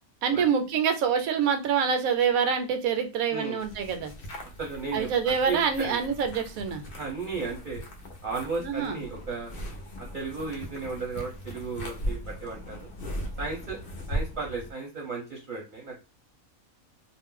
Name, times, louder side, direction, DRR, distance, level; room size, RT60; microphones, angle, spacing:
voice 1, 0.2-4.1 4.9-6.8 8.6-9.0, right 7 dB, 75° right, 7 dB, 1.0 m, -26 dB
sound 1, 3.6-14.7, equal, 55° left, 0.6 m, -38 dB
voice 2, 4.6-6.0 6.9-7.8 8.2-9.5 10.0-12.9 13.4-13.8 14.1-16.0, right 4 dB, 45° right, -1 dB, 0.7 m, -34 dB
2.5 x 2.1 x 3.6 m, 0.28 s
omnidirectional pair, 1.5 m